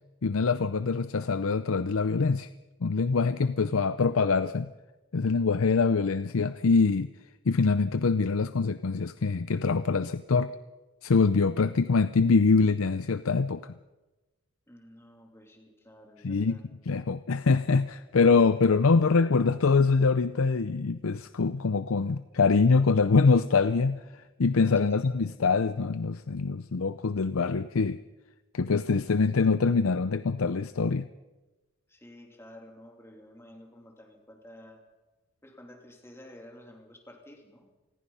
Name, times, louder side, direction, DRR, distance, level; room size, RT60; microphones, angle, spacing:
voice 1, 0.2-2.5 2.8-4.7 5.1-7.1 7.5-10.5 11.0-13.7 16.2-28.0 28.5-31.1, left 4 dB, 85° left, 13 dB, 0.6 m, -24 dB
voice 2, 14.7-16.6 19.0-19.2 24.9-25.0 31.9-34.8 35.4-37.7, left 1 dB, 10° left, 2 dB, 3.0 m, -51 dB
26.5 x 20.5 x 5.6 m, 1.1 s
head